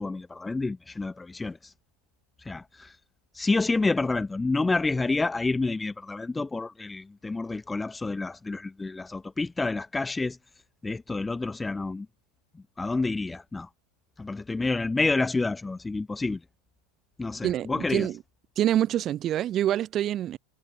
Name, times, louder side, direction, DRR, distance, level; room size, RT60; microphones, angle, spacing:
voice 1, 0.0-1.7 2.4-2.9 3.3-10.4 10.8-12.1 12.5-13.7 14.2-16.4 17.2-18.1, left 3 dB, 5° left, 2.9 m, -29 dB
voice 2, 17.4-18.2 18.6-20.4, right 12 dB, 25° right, 3.4 m, -26 dB
supercardioid pair, 165°, 0 cm